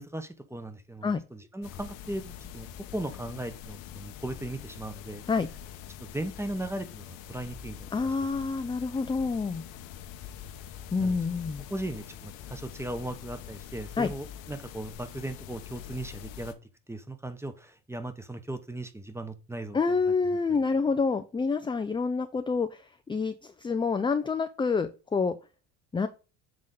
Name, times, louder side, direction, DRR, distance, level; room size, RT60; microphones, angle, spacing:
voice 1, 0.0-2.7 2.9-5.2 6.0-7.9 11.0-11.2 11.7-16.6 16.9-19.8 20.5-20.6, right 1 dB, 5° right, 0.9 m, -37 dB
sound 1, 1.6-16.5, left 10 dB, 70° left, 1.1 m, -44 dB
voice 2, 7.9-9.6 10.9-11.6 14.0-14.1 19.7-25.4 25.9-26.1, left 4 dB, 10° left, 0.4 m, -28 dB
7.7 x 3.6 x 3.8 m
supercardioid pair, 85°, 46 cm